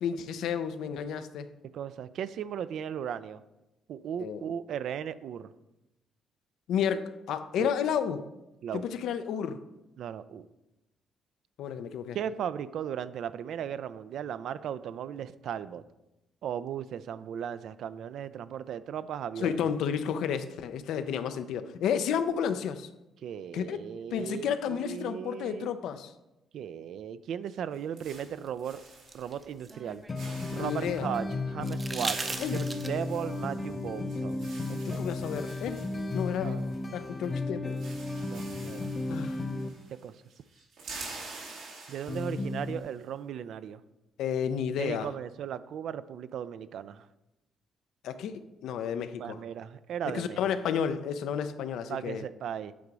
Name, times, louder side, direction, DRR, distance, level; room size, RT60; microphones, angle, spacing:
voice 1, 0.0-1.5 4.2-4.4 6.7-8.2 8.7-9.6 11.6-12.2 19.4-22.9 23.5-23.8 24.1-26.1 30.6-31.1 32.4-32.6 34.9-35.8 36.1-36.7 36.9-37.8 39.1-39.4 44.2-45.1 48.0-49.4 50.1-52.2, left 8 dB, 80° left, 10 dB, 0.5 m, -31 dB
voice 2, 1.7-3.4 3.9-5.5 7.6-7.7 8.6-8.9 10.0-10.5 12.1-15.8 16.4-19.6 23.2-25.7 26.5-28.8 29.1-30.0 30.5-34.4 34.7-35.0 36.4-36.7 38.3-38.9 39.9-40.2 41.9-43.8 44.8-47.1 49.2-50.4 51.9-52.7, right 9 dB, 70° right, 15 dB, 0.3 m, -37 dB
sound 1, 27.5-29.4 29.7-29.9 30.1-31.0 31.6-37.1 37.3-37.4 37.7-40.1 40.3-42.7, right 3 dB, 90° right, 2.1 m, -47 dB
sound 2, 28.5-30.7 31.6-33.2 34.8-34.9, right 3 dB, 25° right, 0.6 m, -38 dB
sound 3, 30.1-39.7 42.1-42.8, left 2 dB, 30° left, 0.6 m, -34 dB
8.4 x 3.9 x 4.7 m, 0.96 s
cardioid pair, 90°, 0 cm